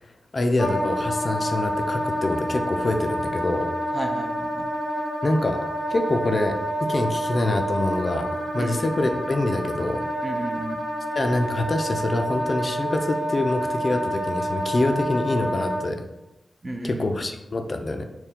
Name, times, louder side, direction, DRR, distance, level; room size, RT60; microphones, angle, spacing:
voice 1, 0.3-3.7 5.2-5.6 5.9-8.3 8.5-10.0 11.2-16.1 16.8-18.1, left 2 dB, 40° left, 5 dB, 0.4 m, -25 dB
Wind instrument woodwind instrument, 0.6-15.9, equal, ahead, 0.8 m, -28 dB
voice 2, 3.9-4.7 8.6-8.8 10.2-10.8 16.6-17.1, right 1 dB, 30° right, 5 dB, 0.4 m, -32 dB
4.3 x 2.1 x 3.6 m, 0.94 s
wide cardioid pair, 85°, 0 cm